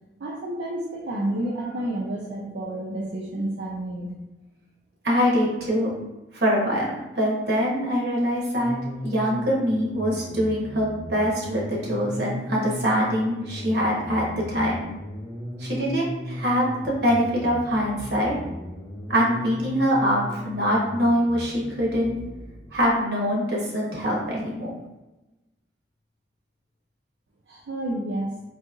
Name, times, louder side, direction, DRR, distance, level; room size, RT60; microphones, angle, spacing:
voice 1, 0.2-4.1 27.5-28.3, right 1 dB, 90° right, -3 dB, 0.5 m, -30 dB
voice 2, 5.0-5.9 6.3-8.7 9.0-14.8 15.6-18.3 19.1-22.2 22.7-24.7, equal, 75° right, -3 dB, 1.0 m, -24 dB
sound 1, 8.5-23.0, equal, 10° left, 0.6 m, -37 dB
4.0 x 2.7 x 2.4 m, 1.0 s
head